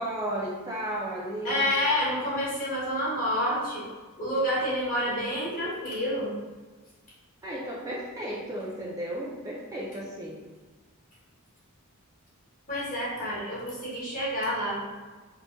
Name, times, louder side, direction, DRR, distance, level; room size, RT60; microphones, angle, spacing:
voice 1, 0.0-1.7 7.4-10.4, right 1 dB, 15° right, -5 dB, 0.3 m, -34 dB
voice 2, 1.4-3.8 4.2-6.3 12.7-14.8, equal, 35° left, -6 dB, 1.0 m, -28 dB
3.0 x 2.2 x 2.9 m, 1.3 s
head